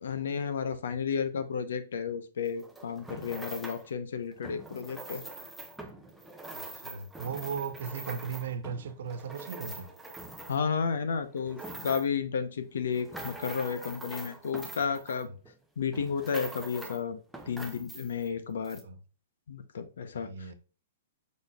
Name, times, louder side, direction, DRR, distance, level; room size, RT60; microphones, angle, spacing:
voice 1, 0.0-5.2 10.5-15.3 15.8-17.2 17.5-18.8 19.5-20.5, left 6 dB, 85° left, 0.7 m, -32 dB
sound 1, 2.4-3.9 4.4-10.8 11.2-12.2 12.7-15.6 15.9-17.0 17.3-18.3 18.6-18.8, right 2 dB, ahead, 0.5 m, -44 dB
voice 2, 6.5-9.9 18.8-19.0 20.1-20.5, right 6 dB, 70° right, 0.7 m, -37 dB
5.1 x 4.1 x 2.3 m
hypercardioid pair, 165°, 0 cm